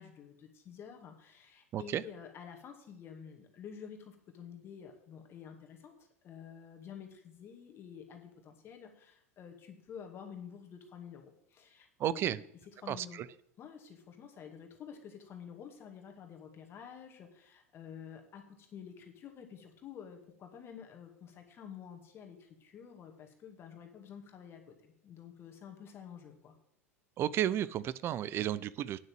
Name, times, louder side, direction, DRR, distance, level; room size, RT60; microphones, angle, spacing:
voice 1, 0.0-5.9 6.2-12.5 12.8-13.3 13.6-26.6, left 7 dB, 30° left, 3 dB, 2.3 m, -50 dB
voice 2, 12.0-12.4 12.9-13.1 27.2-29.0, right 11 dB, 30° right, 18 dB, 0.5 m, -32 dB
9.7 x 6.5 x 7.9 m, 0.72 s
figure-of-eight pair, 85°, 8 cm